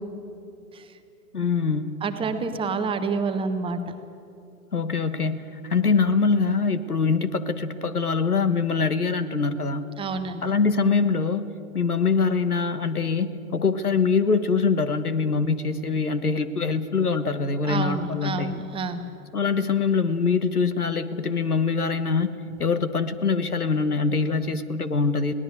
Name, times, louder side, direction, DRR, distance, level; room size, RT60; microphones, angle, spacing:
voice 1, 1.3-2.0 4.7-9.8 10.4-11.5 11.7-18.5 19.3-22.3 22.6-25.3, left 4 dB, 85° left, 11 dB, 1.4 m, -23 dB
voice 2, 2.0-3.8 10.0-10.5 17.6-19.0, right 4 dB, 10° right, 7 dB, 1.1 m, -28 dB
21.5 x 18.0 x 8.2 m, 2.6 s
figure-of-eight pair, 115°, 44 cm